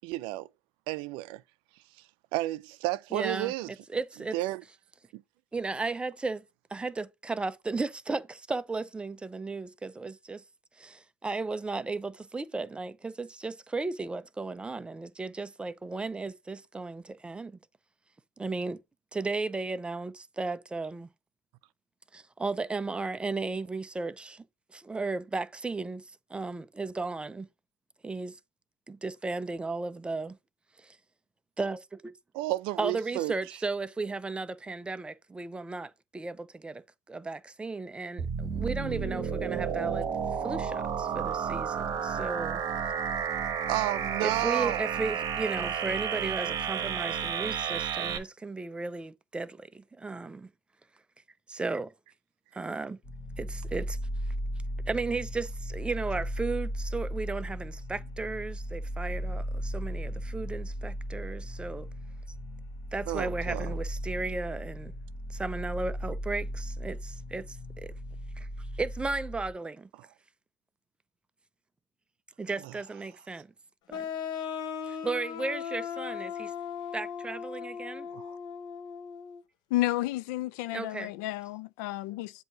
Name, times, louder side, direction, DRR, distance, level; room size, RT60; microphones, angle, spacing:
voice 1, 0.0-0.5 0.9-1.4 2.3-3.7 4.3-4.6 5.1-5.2 32.3-33.3 43.7-44.9 63.1-63.8 70.0-70.1 72.6-72.7 78.1-78.4, right 18 dB, 70° right, 0.4 m, -32 dB
voice 2, 3.1-4.3 5.5-6.4 6.7-10.4 10.8-17.6 18.4-18.8 19.1-21.1 22.1-24.4 24.7-26.0 26.3-27.5 28.0-28.4 28.9-30.4 30.8-31.0 31.6-32.1 32.8-36.8 37.1-40.1 40.4-42.6 44.2-50.5 51.5-51.9 52.5-53.0 53.4-54.0 54.9-61.9 62.9-64.9 65.3-67.6 67.8-67.9 68.4-68.5 68.8-69.9 72.4-73.5 73.9-74.1 74.9-76.5 76.9-78.1 80.7-81.1, right 3 dB, 10° right, 0.4 m, -35 dB
sound 1, 38.2-48.2, right 7 dB, 40° right, 1.2 m, -31 dB
sound 2, 53.0-69.5, equal, 35° left, 2.0 m, -36 dB
sound 3, 73.9-79.4, left 7 dB, 50° left, 0.8 m, -37 dB
voice 3, 79.7-82.3, left 16 dB, 80° left, 0.4 m, -31 dB
7.7 x 2.8 x 4.6 m
supercardioid pair, 120°, 9 cm